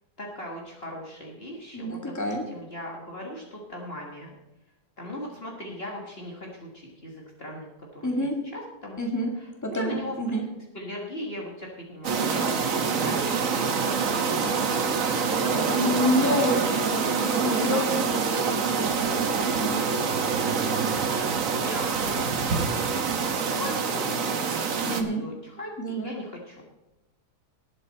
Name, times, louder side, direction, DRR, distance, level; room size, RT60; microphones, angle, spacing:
voice 1, 0.2-4.3 5.0-9.0 9.4-10.4 10.7-18.1 21.1-24.6 24.9-26.6, equal, 35° left, -1 dB, 1.9 m, -38 dB
voice 2, 1.7-2.4 8.0-8.4 9.0-9.3 9.6-10.4 15.7-19.8 24.9-25.2 25.8-26.1, equal, 10° left, 1 dB, 2.0 m, -28 dB
sound 1, 12.0-25.0, right 5 dB, 55° right, 1.4 m, -26 dB
19.5 x 7.6 x 4.2 m, 0.96 s
omnidirectional pair, 1.8 m